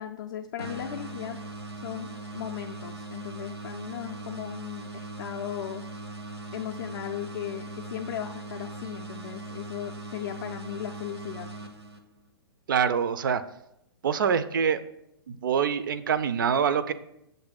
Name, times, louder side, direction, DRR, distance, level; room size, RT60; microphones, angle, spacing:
voice 1, 0.0-1.4 1.8-5.8 6.5-11.5, left 10 dB, 45° left, 4 dB, 0.4 m, -37 dB
sound 1, 0.6-12.3, right 2 dB, 85° right, 0.8 m, -40 dB
voice 2, 12.7-13.4 14.0-14.8 15.3-16.9, right 7 dB, 50° right, 13 dB, 0.4 m, -25 dB
6.7 x 2.6 x 5.6 m, 0.81 s
figure-of-eight pair, 115°, 13 cm